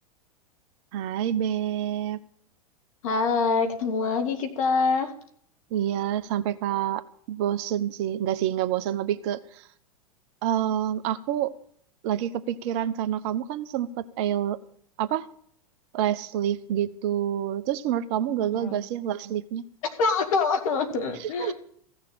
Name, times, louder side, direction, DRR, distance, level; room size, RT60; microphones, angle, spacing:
voice 1, 0.9-2.2 5.7-9.7 10.4-11.5 12.0-13.9 14.2-14.6 15.0-15.3 15.9-19.6 21.2-21.5, right 11 dB, 45° right, 14 dB, 0.9 m, -27 dB
voice 2, 3.0-5.1 18.5-18.8 19.8-21.5, left 4 dB, 60° left, 7 dB, 2.1 m, -25 dB
15.5 x 6.7 x 9.0 m, 0.62 s
figure-of-eight pair, 95°, 19 cm